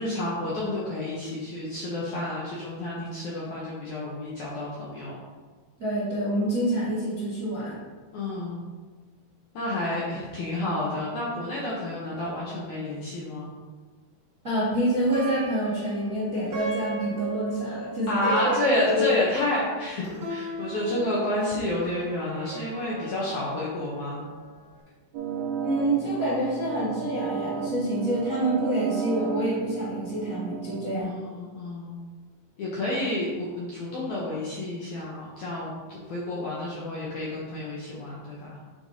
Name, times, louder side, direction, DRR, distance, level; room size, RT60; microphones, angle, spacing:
voice 1, 0.0-5.2 8.1-8.7 9.5-13.5 18.1-24.2 31.0-32.1 32.6-38.6, left 1 dB, 70° left, -6 dB, 1.8 m, -30 dB
voice 2, 5.8-7.8 14.4-18.5 25.6-31.1, right 1 dB, 40° right, -10 dB, 1.1 m, -27 dB
Plucked string instrument, 14.9-24.3, left 1 dB, 70° right, 0.8 m, -34 dB
sound 1, 25.1-31.0, right 7 dB, 85° right, 2.8 m, -32 dB
9.1 x 3.3 x 4.0 m, 1.4 s
omnidirectional pair, 4.6 m